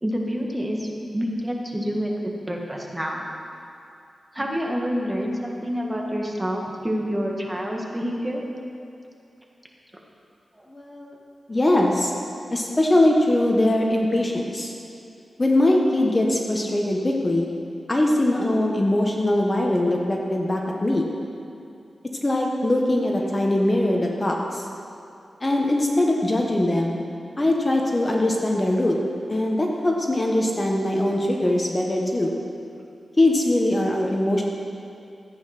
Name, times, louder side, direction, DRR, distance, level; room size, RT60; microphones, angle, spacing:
voice 1, 0.0-3.2 4.3-8.4 10.5-10.6, equal, 15° right, -1 dB, 1.7 m, -27 dB
voice 2, 10.7-11.2 11.5-12.1 12.5-14.7 15.4-17.5 17.9-21.1 22.2-24.6 25.4-26.9 27.4-29.0 29.3-32.3 33.2-34.4, left 1 dB, 25° left, 0 dB, 1.2 m, -21 dB
14.0 x 8.8 x 5.9 m, 2.6 s
wide cardioid pair, 100°, 0 cm